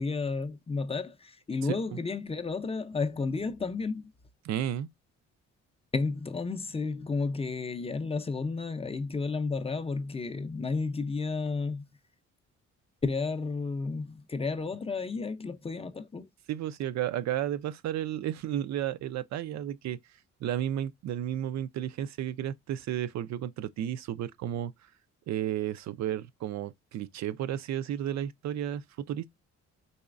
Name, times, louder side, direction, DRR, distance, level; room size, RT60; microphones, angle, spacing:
voice 1, 0.0-4.1 5.9-11.8 13.0-16.3, left 4 dB, 20° left, 0.4 m, -32 dB
voice 2, 4.4-4.9 16.5-20.0 20.4-24.7 25.3-29.4, right 11 dB, 65° right, 0.4 m, -33 dB
4.1 x 3.0 x 2.4 m
cardioid pair, 90°, 30 cm